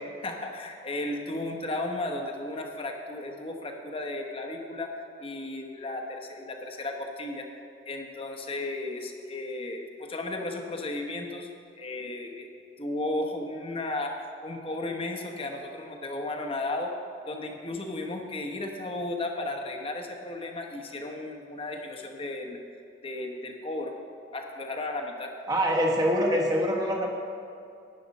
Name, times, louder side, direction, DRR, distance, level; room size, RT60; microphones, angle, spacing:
voice 1, 0.0-7.5 7.9-11.5 11.8-12.5 12.8-16.9 17.3-22.6 23.0-24.0 24.3-25.3, left 2 dB, 30° left, 2 dB, 1.0 m, -34 dB
voice 2, 25.5-27.1, equal, 20° right, -1 dB, 1.4 m, -24 dB
12.0 x 9.5 x 4.1 m, 2.6 s
head